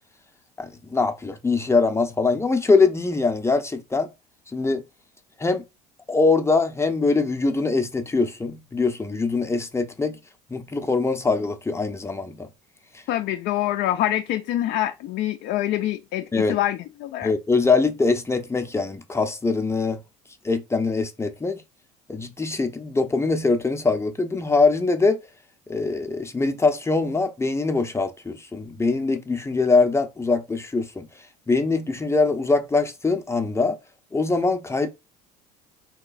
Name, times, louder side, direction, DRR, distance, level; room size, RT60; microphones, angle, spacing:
voice 1, 0.6-4.1 4.5-4.8 5.4-5.6 6.1-10.2 10.5-12.4 16.3-16.6 17.2-20.0 20.4-21.6 22.1-25.2 25.7-31.1 31.5-33.8 34.1-34.9, left 3 dB, 15° left, 0.6 m, -22 dB
voice 2, 13.1-17.3, left 13 dB, 55° left, 0.4 m, -25 dB
3.7 x 3.0 x 2.4 m
hypercardioid pair, 75°, 20 cm